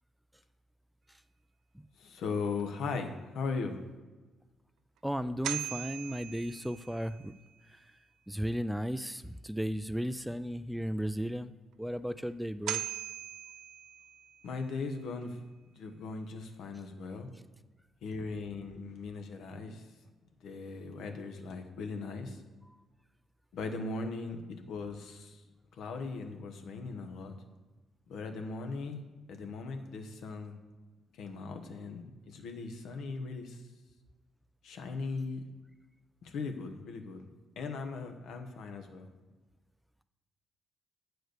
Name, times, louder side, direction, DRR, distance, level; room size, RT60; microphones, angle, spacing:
voice 1, 2.0-3.8 14.4-15.4 15.8-17.3 18.0-19.8 20.4-22.4 23.5-25.4 25.8-27.3 28.1-29.0 29.3-30.6 31.2-33.6 34.6-35.4 36.2-37.3 37.6-39.1, left 4 dB, 75° left, 5 dB, 1.0 m, -38 dB
voice 2, 5.0-7.3 8.3-11.5 11.8-12.8, equal, 5° right, 13 dB, 0.3 m, -35 dB
sound 1, 5.2-7.3 12.3-12.4 12.7-14.6, right 11 dB, 85° right, 0.4 m, -40 dB
7.8 x 4.7 x 6.5 m, 1.2 s
cardioid pair, 90°, 0 cm